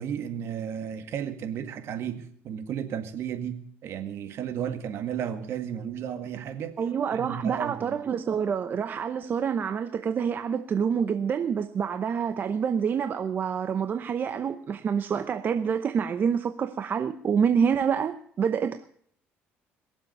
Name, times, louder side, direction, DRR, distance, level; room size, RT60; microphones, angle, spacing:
voice 1, 0.0-3.6 3.8-6.7 7.1-8.0, right 9 dB, 65° right, 1.9 m, -33 dB
voice 2, 6.8-18.9, right 7 dB, 40° right, 0.8 m, -27 dB
22.0 x 7.5 x 6.8 m
cardioid pair, 105°, 5 cm